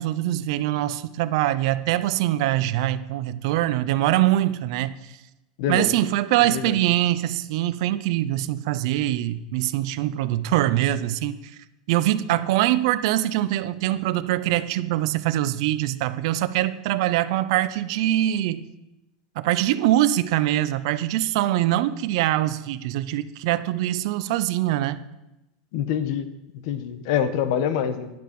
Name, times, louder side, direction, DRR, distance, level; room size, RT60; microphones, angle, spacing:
voice 1, 0.0-5.1 5.7-11.4 11.9-18.6 19.4-25.0, right 14 dB, 65° right, 14 dB, 0.7 m, -23 dB
voice 2, 5.6-5.9 6.5-6.8 25.7-26.3 26.6-28.1, left 9 dB, 60° left, 10 dB, 1.2 m, -25 dB
10.5 x 8.3 x 6.1 m, 0.94 s
supercardioid pair, 135°, 3 cm